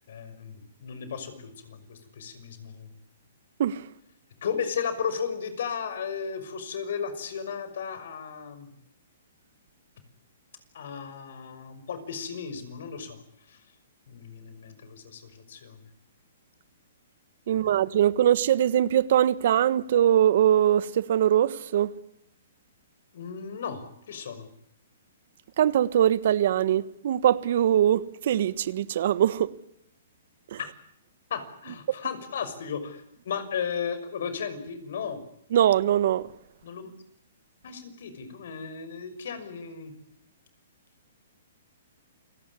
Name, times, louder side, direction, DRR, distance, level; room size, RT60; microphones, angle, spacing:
voice 1, 0.1-2.9 4.4-8.7 10.7-13.2 13.5-13.6 14.1-15.9 23.1-24.5 30.6-30.7 31.3-35.2 36.6-36.9 37.6-39.9, left 6 dB, 65° left, 6.0 m, -35 dB
voice 2, 17.5-21.9 25.6-29.5 30.5-30.6 35.5-36.3, right 10 dB, 60° right, 1.3 m, -22 dB
28.5 x 18.0 x 9.8 m
hypercardioid pair, 140°, 0 cm